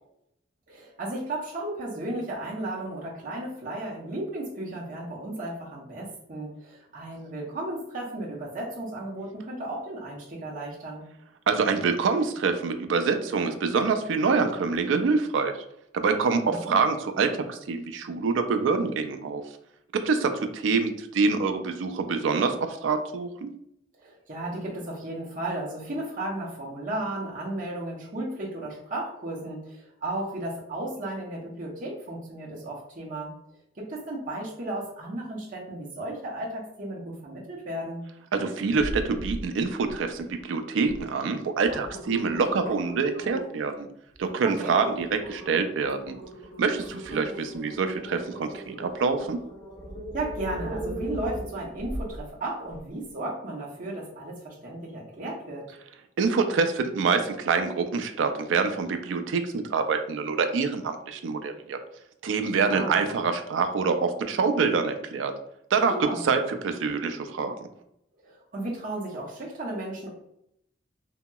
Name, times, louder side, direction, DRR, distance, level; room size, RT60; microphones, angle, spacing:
voice 1, 0.7-11.1 16.5-16.8 24.0-33.3 33.8-38.0 44.4-44.8 50.1-55.7 62.6-63.0 65.9-66.2 68.2-70.1, right 1 dB, 45° right, -4 dB, 0.7 m, -34 dB
voice 2, 11.5-15.5 15.9-19.4 20.0-23.5 38.3-43.9 44.2-46.2 46.6-49.4 56.2-61.8 62.2-65.3 65.7-65.9 66.3-67.5, right 4 dB, 85° right, 7 dB, 0.4 m, -26 dB
sound 1, 38.8-39.4 39.8-40.3 40.9-41.0 41.4-43.6 44.1-44.3 44.7-52.2 52.7-52.8, equal, 85° left, 1.3 m, -38 dB
2.8 x 2.7 x 2.2 m, 0.77 s
head